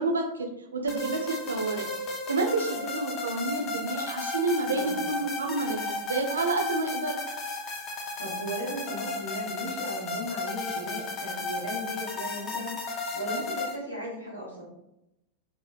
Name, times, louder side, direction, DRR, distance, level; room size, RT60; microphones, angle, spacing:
voice 1, 0.0-1.9 2.3-7.2, right 3 dB, 70° right, 3 dB, 0.4 m, -29 dB
sound 1, 0.9-13.8, left 3 dB, 30° left, 0.5 m, -34 dB
voice 2, 4.7-5.1 7.9-14.6, equal, 85° left, -5 dB, 1.0 m, -37 dB
2.8 x 2.6 x 2.3 m, 0.85 s
figure-of-eight pair, 90°, 0 cm